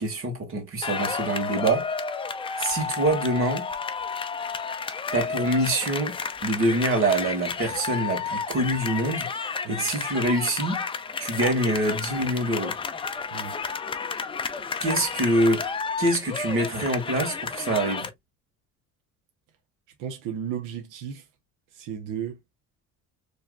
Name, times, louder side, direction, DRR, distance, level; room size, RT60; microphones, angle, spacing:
voice 1, 0.0-1.9 2.6-3.7 5.1-10.8 11.2-12.8 14.8-15.7 16.0-18.1, right 1 dB, 45° right, 1.9 m, -25 dB
sound 1, 0.8-18.1, left 5 dB, 15° left, 0.4 m, -31 dB
voice 2, 20.0-21.3 21.7-22.4, right 8 dB, 90° right, 0.9 m, -34 dB
4.6 x 3.2 x 2.3 m
cardioid pair, 150°, 31 cm